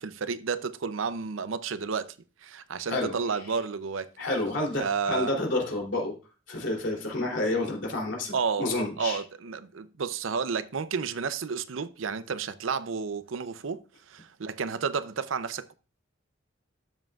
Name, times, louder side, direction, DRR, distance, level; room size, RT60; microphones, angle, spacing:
voice 1, 0.0-2.2 2.4-4.1 4.8-5.3 8.3-8.7 9.0-13.8 14.1-15.7, right 5 dB, 90° right, 0.6 m, -31 dB
voice 2, 4.2-6.1 6.5-9.2, left 2 dB, 65° left, 3.0 m, -29 dB
12.5 x 7.6 x 2.4 m
head